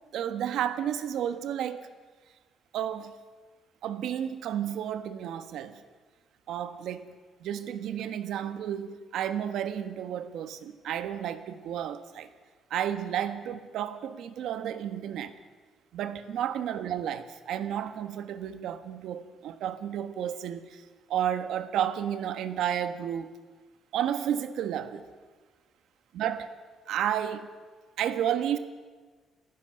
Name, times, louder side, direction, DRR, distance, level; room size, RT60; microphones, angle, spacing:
voice 1, 0.1-1.9 2.7-3.1 3.8-5.8 6.5-7.1 7.4-12.3 12.7-15.3 15.9-20.8 21.1-23.3 23.9-25.1 26.1-26.5 26.9-27.5 28.0-28.6, right 10 dB, 75° right, 1.3 m, -32 dB
26.5 x 15.0 x 6.6 m
cardioid pair, 150°, 0 cm